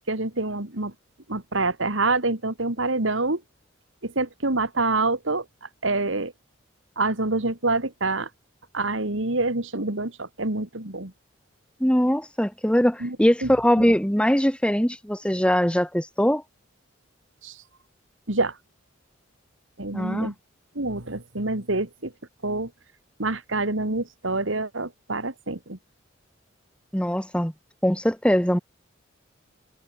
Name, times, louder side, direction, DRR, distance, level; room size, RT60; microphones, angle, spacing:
voice 1, 0.1-0.9 1.3-3.4 4.0-5.4 5.8-6.3 7.0-8.3 8.7-11.1 13.0-13.2 13.4-13.5 13.8-13.9 17.4-17.5 18.3-18.5 19.8-20.3 20.7-22.1 22.4-22.7 23.2-25.8, right 2 dB, 70° right, 2.8 m, -26 dB
voice 2, 11.8-16.4 19.9-20.3 26.9-27.5 27.8-28.6, equal, 5° left, 1.6 m, -21 dB
head